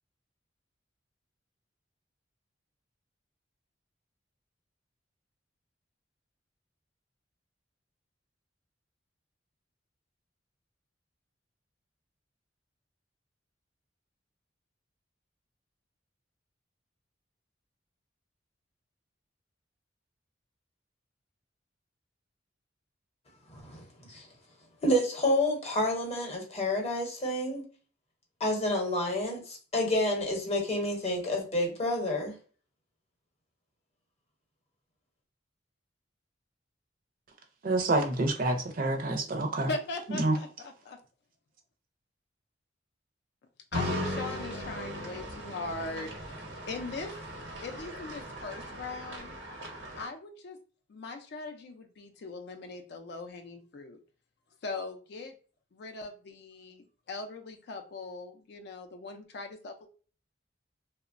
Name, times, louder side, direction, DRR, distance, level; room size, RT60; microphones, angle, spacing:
voice 1, 23.5-24.3 24.8-27.6 28.4-32.3, left 1 dB, 35° left, 0 dB, 0.8 m, -29 dB
voice 2, 37.6-39.7 40.1-40.4, right 2 dB, 50° right, 4 dB, 0.5 m, -27 dB
voice 3, 39.7-41.0 43.7-46.1 46.7-47.1 47.6-49.3 50.0-50.6 50.9-54.0 54.6-55.3 55.7-59.9, left 3 dB, 60° left, 5 dB, 0.4 m, -40 dB
sound 1, 43.7-50.0, equal, 90° right, 0.8 m, -38 dB
2.9 x 2.1 x 2.4 m, 0.39 s
head